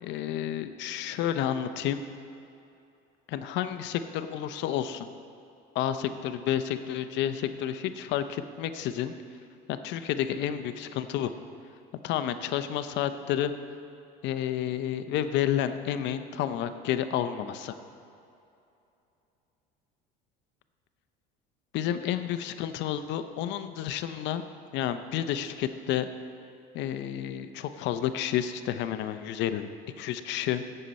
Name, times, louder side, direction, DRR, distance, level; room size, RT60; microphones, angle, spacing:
voice 1, 0.0-2.0 3.3-5.1 5.7-9.1 9.7-11.3 12.0-13.5 14.2-17.8 21.7-24.4 24.7-26.1 26.7-29.7 30.0-30.6, left 10 dB, 65° left, 10 dB, 0.7 m, -30 dB
17.0 x 6.7 x 4.2 m, 2.7 s
supercardioid pair, 95°, 20 cm